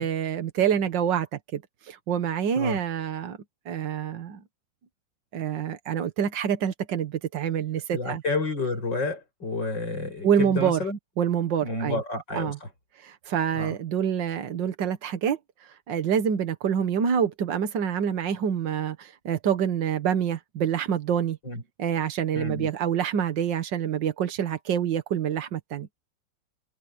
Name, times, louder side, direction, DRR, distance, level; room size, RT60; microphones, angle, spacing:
voice 1, 0.0-1.6 1.9-3.4 3.7-4.4 5.3-8.2 10.2-10.8 11.2-12.0 12.3-12.6 13.0-15.4 15.9-21.4 21.8-25.9, right 8 dB, 75° right, 2.0 m, -26 dB
voice 2, 7.9-11.0 11.6-12.7 13.5-13.7 21.4-21.6 22.3-22.7, left 3 dB, 75° left, 8.5 m, -30 dB
omnidirectional pair, 2.0 m